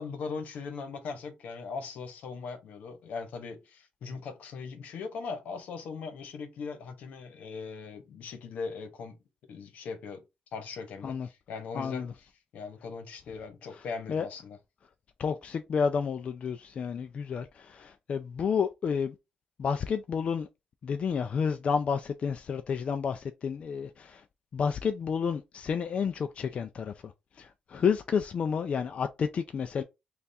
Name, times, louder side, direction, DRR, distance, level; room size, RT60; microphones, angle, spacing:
voice 1, 0.0-9.2 9.5-10.2 10.5-14.6, left 5 dB, 80° left, 1.0 m, -39 dB
voice 2, 11.7-12.1 13.7-14.3 15.2-19.1 19.6-20.5 20.8-24.2 24.5-27.1 27.4-29.8, left 6 dB, 50° left, 0.3 m, -30 dB
3.3 x 2.4 x 4.1 m
cardioid pair, 100°, 3 cm